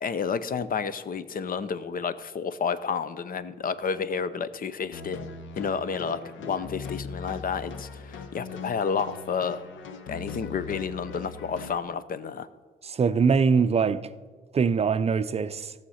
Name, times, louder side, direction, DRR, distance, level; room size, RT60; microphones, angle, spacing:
voice 1, 0.0-5.2 5.6-9.6 10.1-12.5, left 6 dB, 45° left, 0.7 m, -30 dB
sound 1, 4.9-11.8, left 5 dB, 75° left, 1.0 m, -40 dB
voice 2, 12.8-14.1 14.5-15.7, right 5 dB, 30° right, 0.5 m, -23 dB
14.5 x 6.5 x 5.7 m
cardioid pair, 90°, 20 cm